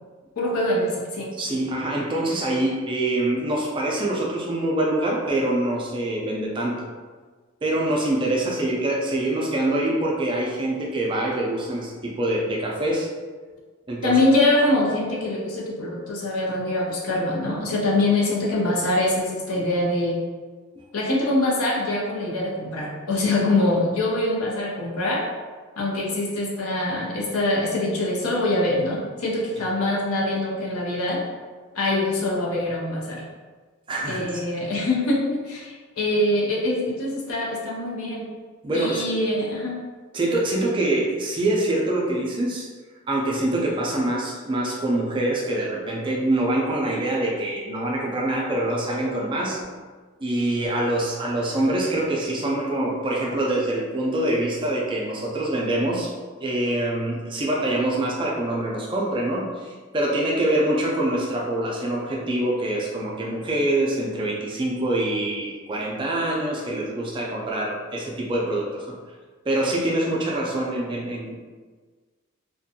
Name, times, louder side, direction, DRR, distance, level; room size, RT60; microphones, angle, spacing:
voice 1, 0.4-1.3 14.0-20.2 20.9-25.3 25.8-31.2 31.7-33.2 34.1-38.3 38.7-39.8, left 2 dB, 85° left, -3 dB, 0.6 m, -24 dB
voice 2, 1.4-6.8 7.6-13.1 13.9-14.2 20.8-20.9 33.9-34.4 38.6-39.0 40.1-42.7 43.1-49.6 50.2-56.1 56.4-68.9 69.5-71.3, right 1 dB, 20° right, -2 dB, 0.3 m, -25 dB
2.5 x 2.2 x 2.7 m, 1.4 s
head